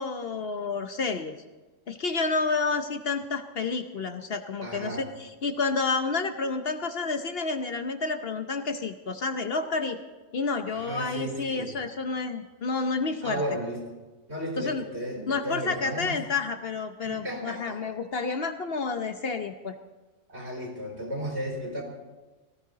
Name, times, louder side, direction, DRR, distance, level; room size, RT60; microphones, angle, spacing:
voice 1, 0.0-1.3 1.9-10.0 10.3-13.4 14.6-14.8 15.3-19.7, left 4 dB, 55° left, 7 dB, 1.0 m, -30 dB
voice 2, 4.6-5.0 10.7-11.8 13.2-13.8 14.3-16.2 17.0-17.8 20.3-21.8, equal, 60° right, -2 dB, 4.4 m, -34 dB
18.0 x 14.0 x 4.0 m, 1.2 s
omnidirectional pair, 1.3 m